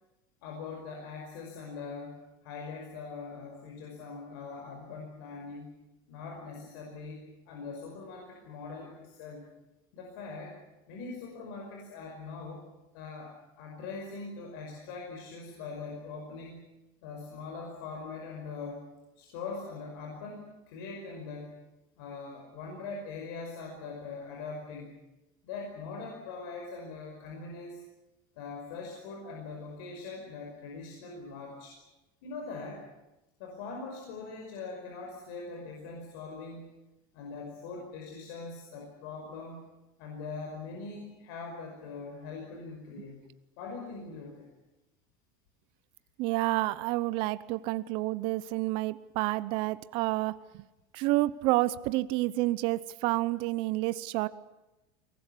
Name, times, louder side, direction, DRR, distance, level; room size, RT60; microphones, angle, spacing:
voice 1, 0.4-5.8 6.1-9.5 9.9-10.6 10.9-12.7 12.9-16.6 17.0-18.9 19.2-21.5 22.0-25.0 25.4-27.8 28.4-31.8 32.2-32.8 33.4-36.7 37.1-39.6 40.0-43.2 43.6-44.5, left 4 dB, 70° left, 1 dB, 5.4 m, -42 dB
voice 2, 46.2-50.6 50.9-54.3, right 18 dB, 50° right, 16 dB, 0.8 m, -29 dB
23.0 x 20.0 x 10.0 m, 0.98 s
cardioid pair, 165°, 11 cm